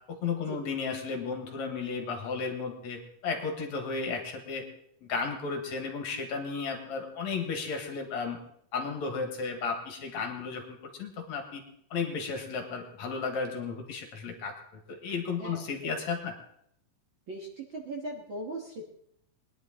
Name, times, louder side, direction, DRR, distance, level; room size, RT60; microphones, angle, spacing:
voice 1, 0.1-4.7 5.1-8.4 8.7-11.6 11.9-14.5 14.9-16.3, left 5 dB, 60° left, 4 dB, 2.6 m, -34 dB
voice 2, 17.3-18.8, right 2 dB, 45° right, 0 dB, 1.8 m, -38 dB
20.5 x 11.0 x 3.7 m, 0.69 s
omnidirectional pair, 3.8 m